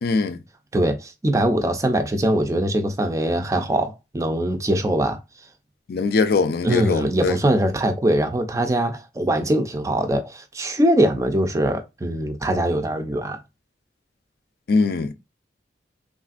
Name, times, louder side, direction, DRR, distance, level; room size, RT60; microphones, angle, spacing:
voice 1, 0.0-0.4 5.9-7.3 14.7-15.1, left 4 dB, 55° left, 0.4 m, -21 dB
voice 2, 0.7-5.2 6.6-13.4, right 1 dB, 15° right, 0.4 m, -22 dB
3.2 x 2.5 x 2.4 m
head